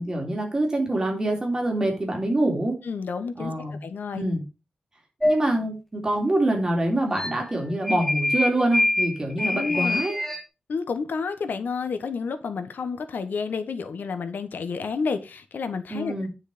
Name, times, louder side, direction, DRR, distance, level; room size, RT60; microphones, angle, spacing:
voice 1, 0.0-2.8 3.4-3.8 4.1-4.4 5.2-10.2 15.9-16.3, right 1 dB, 20° right, 0 dB, 3.6 m, -25 dB
voice 2, 2.8-4.3 9.4-10.0 10.7-16.3, left 5 dB, 90° left, 10 dB, 1.3 m, -30 dB
sound 1, 5.2-5.4 7.1-7.5 7.8-10.4, left 2 dB, 5° left, 1.4 m, -24 dB
10.0 x 6.3 x 5.1 m, 0.29 s
wide cardioid pair, 170°, 3 cm